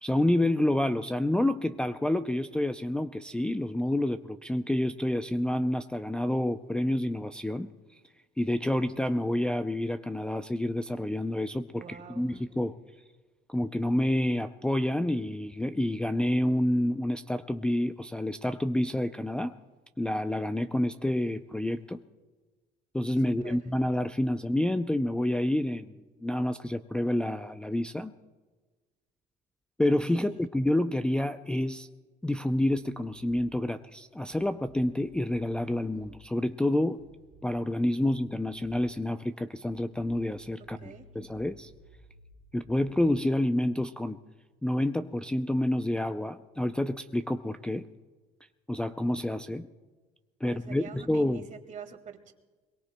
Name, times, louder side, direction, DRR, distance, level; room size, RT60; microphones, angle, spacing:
voice 1, 0.0-7.7 8.4-12.7 13.5-19.5 20.0-22.0 22.9-25.9 26.2-28.1 29.8-31.9 32.2-37.0 37.4-41.7 42.5-44.2 44.6-47.8 48.7-49.7 50.4-51.5, left 1 dB, 5° left, 8 dB, 0.4 m, -28 dB
voice 2, 11.8-12.4 23.4-23.6 30.2-30.5 40.8-41.0 50.4-52.3, right 7 dB, 50° right, 6 dB, 1.8 m, -46 dB
sound 1, 34.3-36.2 37.0-37.7 38.0-38.9 39.6-43.3, equal, 85° right, 2.5 m, -56 dB
22.5 x 22.0 x 2.2 m, 1.3 s
cardioid pair, 110°, 17 cm